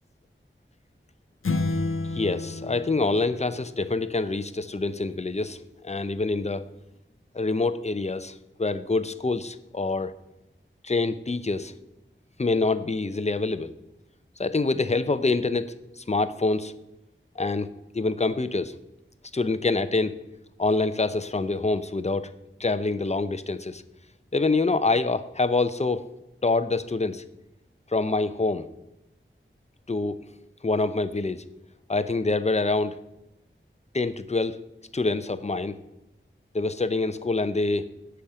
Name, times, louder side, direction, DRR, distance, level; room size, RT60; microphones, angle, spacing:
sound 1, 1.4-4.1, left 3 dB, 75° left, 0.7 m, -30 dB
voice 1, 2.1-6.7 7.3-10.1 10.8-11.7 12.4-13.7 14.4-16.7 17.4-17.7 17.9-18.7 19.3-20.2 20.6-22.3 22.6-23.8 24.3-26.0 26.4-27.2 27.9-28.7 29.9-30.2 30.6-31.4 31.9-33.0 33.9-34.6 34.9-35.7 36.5-37.9, left 3 dB, 30° left, 11 dB, 0.7 m, -26 dB
8.4 x 5.8 x 7.5 m, 0.93 s
wide cardioid pair, 50°, 21 cm